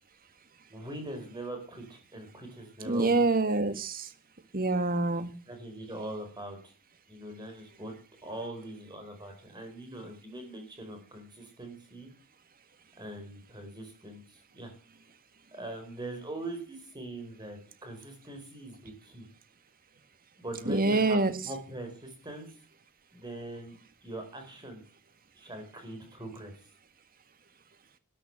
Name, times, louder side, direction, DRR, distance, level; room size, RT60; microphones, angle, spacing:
voice 1, 0.7-3.2 5.5-6.7 7.1-7.9 8.2-12.1 13.0-14.7 15.5-19.3 20.4-22.5 23.1-23.8 24.0-24.8 25.3-26.5, right 1 dB, 20° right, 6 dB, 4.9 m, -42 dB
voice 2, 2.9-4.1 4.5-5.3 20.7-21.3, right 3 dB, 40° right, 11 dB, 1.9 m, -26 dB
14.0 x 12.0 x 8.1 m, 0.39 s
head